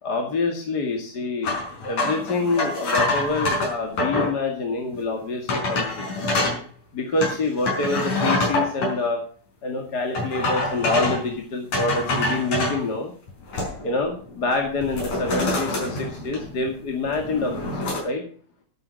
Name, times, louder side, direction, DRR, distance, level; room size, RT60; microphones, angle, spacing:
voice 1, 0.0-6.0 6.9-9.2 9.6-13.1 13.8-17.7 18.0-18.2, left 3 dB, 35° left, 2 dB, 2.2 m, -26 dB
sound 1, 1.4-4.3 4.9-5.0 5.5-6.6 7.2-8.9 10.1-11.3 11.7-12.8 13.3-14.0 14.3-14.5 14.8-16.7 17.0-18.0, left 2 dB, 60° left, 6.2 m, -25 dB
12.0 x 11.5 x 5.3 m, 0.43 s
omnidirectional pair, 3.6 m